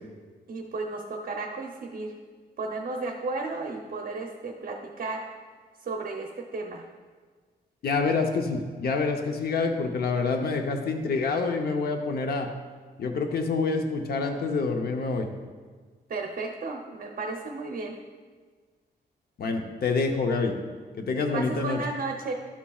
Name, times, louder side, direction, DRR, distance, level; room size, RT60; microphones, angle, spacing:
voice 1, 0.5-2.1 2.6-5.2 5.8-6.9 16.1-17.9 21.3-22.3, right 3 dB, 55° right, 1 dB, 0.8 m, -33 dB
voice 2, 7.8-12.5 13.0-15.3 19.4-20.5 21.0-21.8, left 4 dB, 65° left, 4 dB, 0.8 m, -27 dB
12.0 x 7.1 x 2.4 m, 1.5 s
wide cardioid pair, 115°, 17 cm